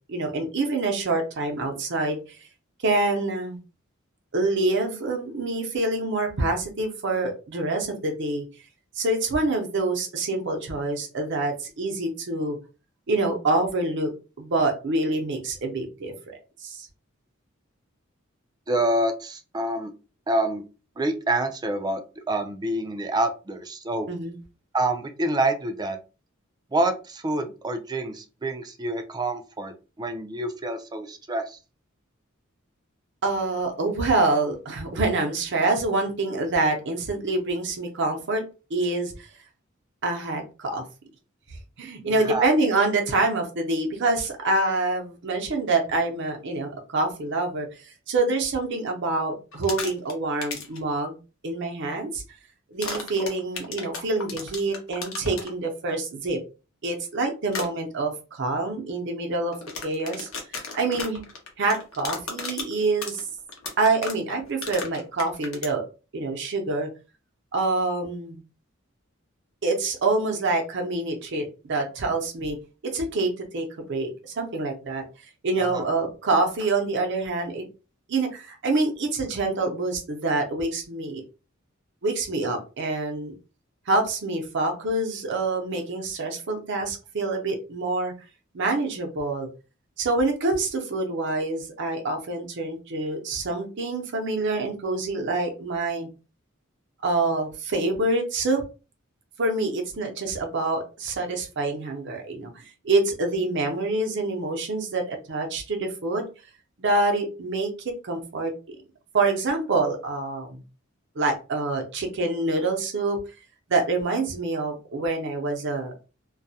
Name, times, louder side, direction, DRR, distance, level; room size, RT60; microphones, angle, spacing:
voice 1, 0.1-2.4 2.8-3.6 4.3-8.4 9.0-12.6 13.1-14.1 14.4-16.1 16.6-16.9 24.1-24.4 33.2-38.4 38.7-39.3 40.0-40.8 41.5-47.7 48.1-51.2 51.4-52.2 52.7-56.4 56.8-59.5 59.8-60.3 60.5-61.2 61.6-63.2 63.8-65.8 66.1-66.9 67.5-68.4 69.6-72.6 72.9-75.0 75.4-77.7 78.1-81.2 82.0-83.3 83.9-88.1 88.5-89.5 90.0-96.1 97.0-98.6 99.4-106.2 106.8-107.7 108.0-108.8 109.1-110.6 111.2-113.2 113.7-115.9, right 2 dB, 60° right, 3 dB, 0.6 m, -26 dB
voice 2, 18.7-19.9 20.3-20.6 21.0-22.0 22.3-24.1 24.7-26.0 26.7-31.6 42.2-42.5 75.6-75.8, right 2 dB, 20° right, 7 dB, 0.3 m, -27 dB
sound 1, 49.5-50.1 50.4-50.8 52.8-55.5 57.5-57.7 59.5-65.7, left 4 dB, 80° left, 0.7 m, -34 dB
2.3 x 2.1 x 2.7 m, 0.32 s
head